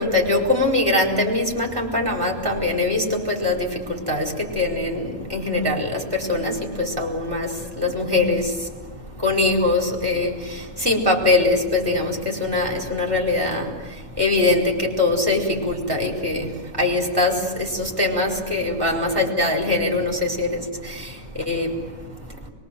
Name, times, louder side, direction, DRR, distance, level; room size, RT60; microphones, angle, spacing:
voice 1, 0.0-22.4, left 2 dB, 15° right, 0 dB, 4.9 m, -23 dB
24.0 x 22.5 x 7.8 m, 1.4 s
omnidirectional pair, 1.5 m